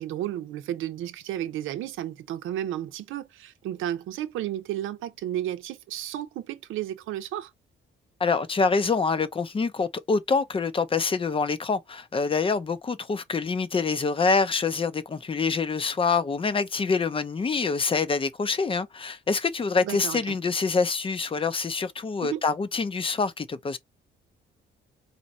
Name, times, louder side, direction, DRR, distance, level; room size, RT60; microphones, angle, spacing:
voice 1, 0.0-7.5 19.8-20.3 22.2-22.4, right 12 dB, 85° right, 0.7 m, -33 dB
voice 2, 8.2-23.8, left 4 dB, 25° left, 0.6 m, -26 dB
4.2 x 2.6 x 3.0 m
cardioid pair, 90°, 20 cm